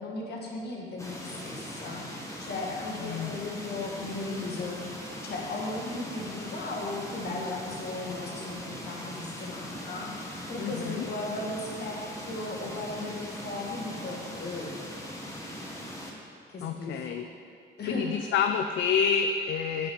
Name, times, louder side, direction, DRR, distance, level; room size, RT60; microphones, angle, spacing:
voice 1, 0.0-4.8 5.2-14.8 16.5-17.2 17.8-18.3, left 2 dB, 55° left, -1 dB, 1.7 m, -36 dB
sound 1, 1.0-16.1, equal, 15° left, 1.4 m, -40 dB
voice 2, 3.0-3.3 10.6-11.1 16.6-17.3 17.9-19.9, left 6 dB, 70° left, 6 dB, 0.4 m, -28 dB
8.7 x 7.7 x 3.6 m, 2.4 s
cardioid pair, 90°, 20 cm